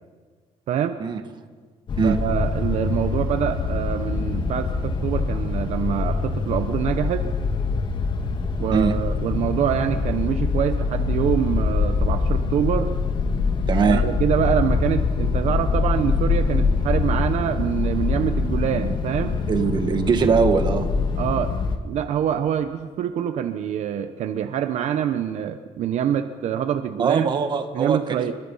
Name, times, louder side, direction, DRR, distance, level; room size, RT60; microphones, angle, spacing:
voice 1, 0.7-1.0 2.0-7.3 8.6-12.9 13.9-19.4 21.2-21.5 21.8-27.3 27.7-28.3, right 9 dB, 65° right, 9 dB, 1.0 m, -25 dB
sound 1, 1.9-21.8, left 4 dB, 40° left, 2.0 m, -24 dB
voice 2, 13.7-14.0 19.5-20.9 27.0-28.2, right 6 dB, 40° right, 7 dB, 1.9 m, -21 dB
29.0 x 23.5 x 5.7 m, 1.5 s
cardioid pair, 175°, 12 cm